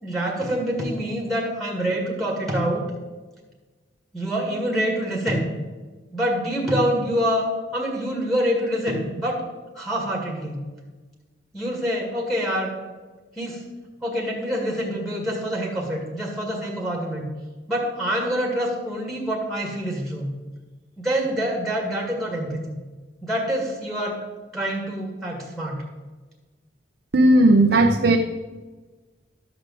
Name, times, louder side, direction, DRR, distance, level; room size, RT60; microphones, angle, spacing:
voice 1, 0.0-2.9 4.1-5.5 6.1-9.4 9.8-10.6 11.5-12.7 13.4-13.7 14.0-17.3 17.7-20.3 21.0-22.8 23.2-24.3 24.5-25.8, equal, ahead, -1 dB, 1.9 m, -26 dB
voice 2, 27.1-28.2, right 1 dB, 55° right, 2 dB, 0.7 m, -15 dB
12.5 x 4.9 x 7.6 m, 1.3 s
head